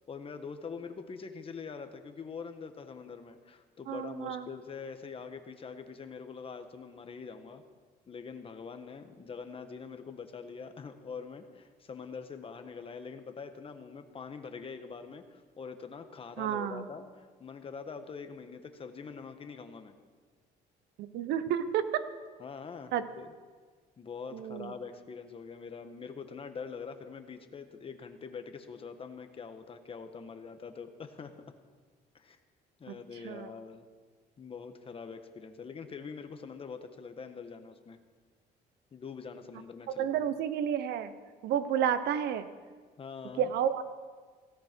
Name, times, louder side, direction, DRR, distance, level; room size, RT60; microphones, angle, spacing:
voice 1, 0.1-7.6 8.1-19.9 22.4-23.3 24.0-31.3 32.1-32.4 32.8-33.9 34.4-38.0 38.9-40.3 43.0-43.5, left 5 dB, 35° left, 7 dB, 1.5 m, -44 dB
voice 2, 3.9-4.5 16.4-16.9 21.0-22.1 22.9-23.0 24.3-24.7 32.9-33.0 33.2-33.5 40.0-41.1 41.4-42.5 43.4-43.8, right 9 dB, 75° right, 12 dB, 1.1 m, -31 dB
17.0 x 16.0 x 4.6 m, 1.5 s
cardioid pair, 110°, 17 cm